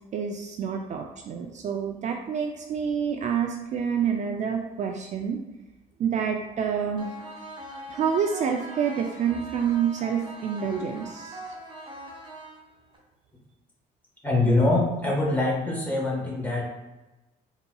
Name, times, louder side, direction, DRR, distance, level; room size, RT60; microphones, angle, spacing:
voice 1, 0.1-5.4 6.0-7.1 7.7-11.4, right 7 dB, 45° right, 2 dB, 0.4 m, -28 dB
sound 1, 7.0-13.0, right 1 dB, 30° right, 0.7 m, -41 dB
voice 2, 14.2-16.6, left 2 dB, 10° left, -4 dB, 1.2 m, -24 dB
3.9 x 2.8 x 2.2 m, 1.1 s
cardioid pair, 110°, 17 cm